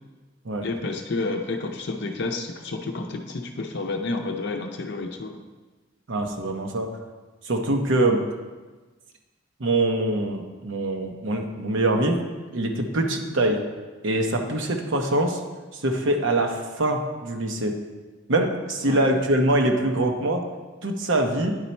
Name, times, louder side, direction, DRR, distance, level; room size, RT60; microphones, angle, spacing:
voice 1, 0.6-5.4 18.9-19.2, left 3 dB, 60° left, 4 dB, 0.6 m, -30 dB
voice 2, 6.1-6.9 7.5-8.2 9.6-12.2 12.5-13.6 14.0-15.4 15.7-17.7 18.3-20.4 20.8-21.5, right 1 dB, 70° right, 3 dB, 0.9 m, -23 dB
9.9 x 4.1 x 4.4 m, 1.3 s
head